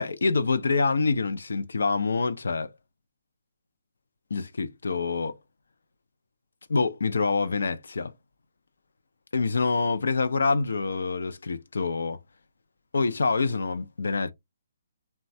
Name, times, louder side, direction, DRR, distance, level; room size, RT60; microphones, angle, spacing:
voice 1, 0.0-2.7 4.3-5.3 6.7-8.1 9.3-12.2 12.9-14.3, left 4 dB, 80° left, 0.4 m, -26 dB
3.1 x 2.2 x 2.6 m
hypercardioid pair, 150°, 0 cm